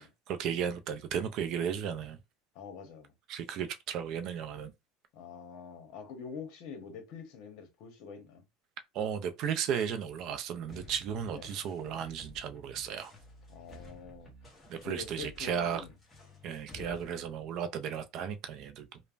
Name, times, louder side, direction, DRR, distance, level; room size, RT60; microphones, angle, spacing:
voice 1, 0.3-2.2 3.3-4.7 8.9-13.1 14.7-15.8 16.4-19.0, right 8 dB, 50° right, 0.4 m, -35 dB
voice 2, 2.5-3.1 5.1-8.4 11.3-11.5 13.5-14.3 14.7-15.9 16.7-17.0, left 5 dB, 60° left, 0.9 m, -45 dB
sound 1, 10.7-17.1, equal, 15° left, 1.0 m, -53 dB
3.2 x 2.0 x 2.4 m
supercardioid pair, 140°, 0 cm